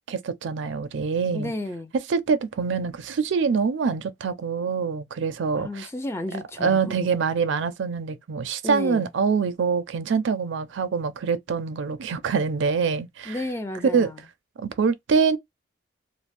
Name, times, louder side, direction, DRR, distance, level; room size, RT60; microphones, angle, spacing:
voice 1, 0.1-1.5 2.1-5.9 6.6-13.4 13.9-14.1 14.6-15.4, right 5 dB, 75° right, 0.4 m, -25 dB
voice 2, 1.3-1.9 5.6-7.1 8.6-9.1 13.3-14.2, left 1 dB, 15° left, 0.4 m, -32 dB
2.5 x 2.0 x 3.2 m
head